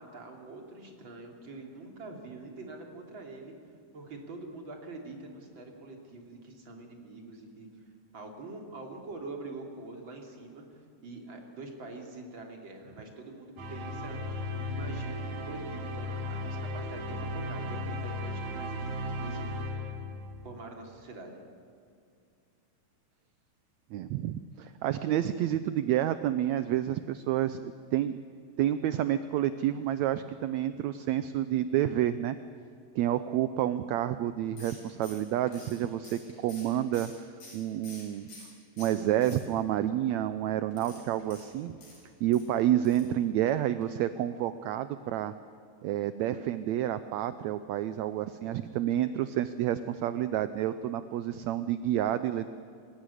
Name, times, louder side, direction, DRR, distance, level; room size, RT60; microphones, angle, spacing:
voice 1, 0.0-3.5 3.9-7.7 8.1-14.2 14.5-18.8 19.2-19.5 20.4-21.4, right 2 dB, 35° right, 2 dB, 3.6 m, -45 dB
sound 1, 13.6-20.6, left 1 dB, 60° right, 3.0 m, -36 dB
voice 2, 23.9-28.2 28.6-32.4 32.9-37.1 37.5-38.3 38.8-41.7 42.2-45.3 45.8-52.5, right 12 dB, 80° right, 12 dB, 1.6 m, -29 dB
sound 2, 34.6-38.5 38.8-39.8 40.7-42.5 42.8-43.2 43.4-43.5 43.8-43.9, left 2 dB, 70° left, 8.9 m, -50 dB
26.0 x 16.0 x 10.0 m, 2.4 s
omnidirectional pair, 3.9 m